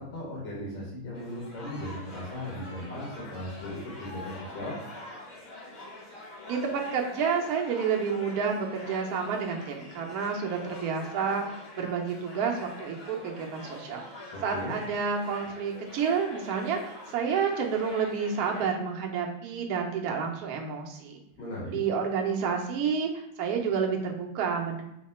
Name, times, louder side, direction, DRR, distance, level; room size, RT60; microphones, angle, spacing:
voice 1, 0.0-4.8 14.3-14.7 21.4-21.8, left 1 dB, 90° left, -6 dB, 2.4 m, -37 dB
sound 1, 1.1-18.6, left 2 dB, 45° left, 0.9 m, -45 dB
voice 2, 6.5-21.2 21.7-24.8, right 6 dB, 75° right, 1 dB, 0.8 m, -30 dB
4.7 x 2.2 x 4.2 m, 0.81 s
omnidirectional pair, 2.3 m